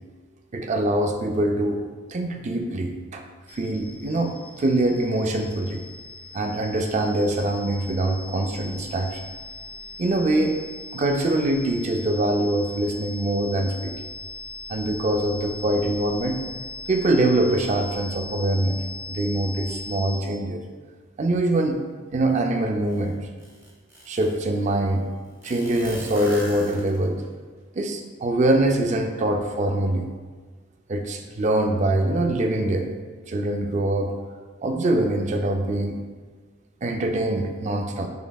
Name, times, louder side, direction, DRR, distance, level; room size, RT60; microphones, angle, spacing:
voice 1, 0.5-1.8 2.1-3.2 3.5-5.8 6.3-9.3 10.0-10.6 10.9-14.0 14.7-16.4 16.9-18.8 19.1-20.6 21.2-21.8 22.1-23.2 24.1-25.1 25.4-27.2 27.8-30.1 30.9-32.9 33.3-34.2 34.6-36.0 36.8-38.1, right 1 dB, 35° right, 4 dB, 0.4 m, -23 dB
sound 1, 3.5-20.2, left 3 dB, 50° left, 0.7 m, -39 dB
sound 2, 22.9-23.0 23.4-24.5 25.4-27.2, equal, 15° right, 0.7 m, -39 dB
6.7 x 3.1 x 2.2 m, 1.5 s
head